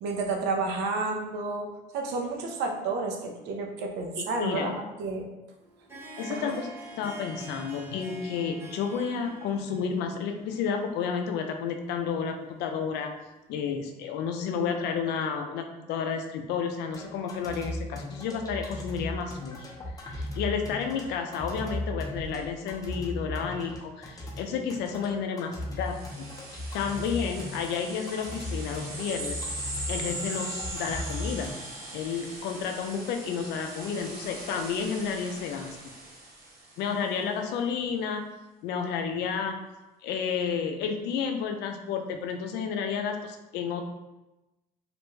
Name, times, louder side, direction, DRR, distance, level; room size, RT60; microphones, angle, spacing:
voice 1, 0.0-5.3 6.3-6.5, right 3 dB, 85° right, 2 dB, 0.5 m, -31 dB
voice 2, 4.2-4.7 6.2-13.1 13.5-19.7 20.0-26.3 26.5-29.5 29.9-31.5 31.9-35.8 36.8-38.2 38.6-39.6 40.0-43.8, left 6 dB, 80° left, 5 dB, 0.4 m, -31 dB
Harp, 5.6-13.3, right 1 dB, 15° right, 0.7 m, -47 dB
sound 1, 16.9-31.5, left 1 dB, 20° left, 0.5 m, -37 dB
sound 2, 25.8-36.9, right 1 dB, 65° right, 1.1 m, -40 dB
2.5 x 2.1 x 3.1 m, 1.0 s
cardioid pair, 110°, 17 cm